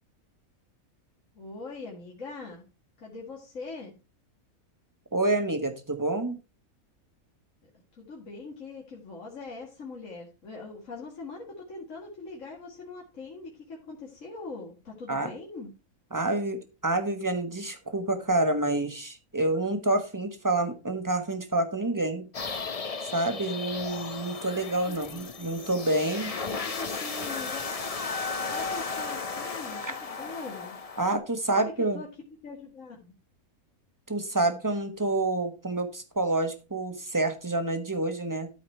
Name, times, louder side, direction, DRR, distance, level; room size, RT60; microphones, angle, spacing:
voice 1, 1.4-2.6 3.0-4.0 7.9-15.7 24.9-25.5 26.3-27.6 28.5-30.8 31.5-32.1 32.4-33.2, left 3 dB, 60° left, -2 dB, 2.3 m, -42 dB
voice 2, 5.1-6.4 15.1-15.3 16.1-22.2 23.0-26.3 31.0-32.0 34.1-38.5, right 2 dB, 15° right, 6 dB, 1.3 m, -28 dB
sound 1, 22.3-31.2, left 4 dB, 30° left, 0.7 m, -35 dB
13.0 x 4.9 x 4.5 m, 0.30 s
omnidirectional pair, 1.5 m